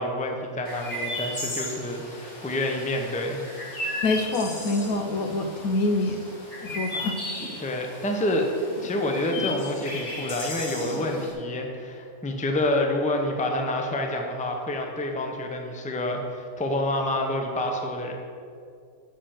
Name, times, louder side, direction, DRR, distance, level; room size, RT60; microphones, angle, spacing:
voice 1, 0.0-3.4 7.6-8.5 8.8-18.2, left 1 dB, 5° left, 2 dB, 0.7 m, -28 dB
Chirp tweet, 0.6-11.3, left 1 dB, 50° left, 2.4 m, -35 dB
voice 2, 4.0-6.2 6.6-7.2, left 2 dB, 80° left, 6 dB, 1.3 m, -26 dB
7.0 x 6.7 x 7.7 m, 2.4 s
omnidirectional pair, 1.5 m